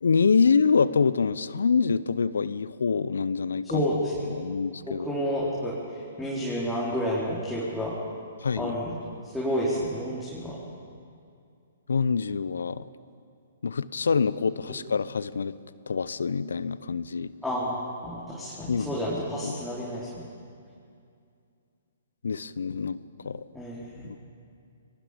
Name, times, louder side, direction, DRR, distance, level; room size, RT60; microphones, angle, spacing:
voice 1, 0.0-3.9 4.2-5.1 8.4-8.8 11.9-12.9 13.6-15.6 15.9-17.3 18.7-18.9 19.4-19.6 22.2-23.0 23.2-23.4 24.0-24.2, left 5 dB, 75° left, 17 dB, 0.8 m, -25 dB
voice 2, 3.6-4.2 5.0-5.7 6.2-7.9 8.6-8.9 9.3-10.6 17.4-20.2 23.5-24.0, equal, ahead, -8 dB, 4.2 m, -30 dB
29.5 x 21.5 x 5.3 m, 2.4 s
figure-of-eight pair, 125°, 0 cm